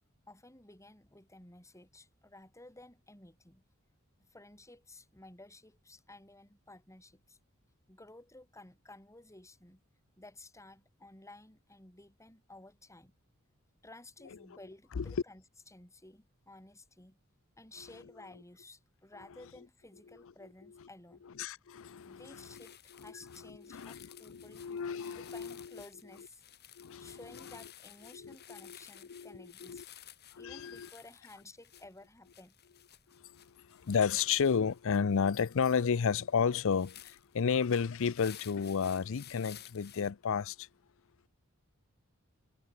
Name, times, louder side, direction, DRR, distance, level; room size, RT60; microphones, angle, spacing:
voice 1, 0.3-3.6 4.2-7.4 7.9-9.8 10.2-13.1 13.8-17.2 17.6-21.2 22.0-24.7 25.1-26.4 27.0-29.9 30.4-32.6, left 2 dB, 15° left, 7.2 m, -54 dB
voice 2, 21.4-22.7 23.0-25.8 26.8-27.2 28.1-28.3 28.6-28.8 29.1-29.8 30.3-30.9 33.1-40.7, left 6 dB, 65° left, 0.5 m, -32 dB
sound 1, 22.0-22.2 22.4-40.1, left 11 dB, 50° left, 3.8 m, -55 dB
head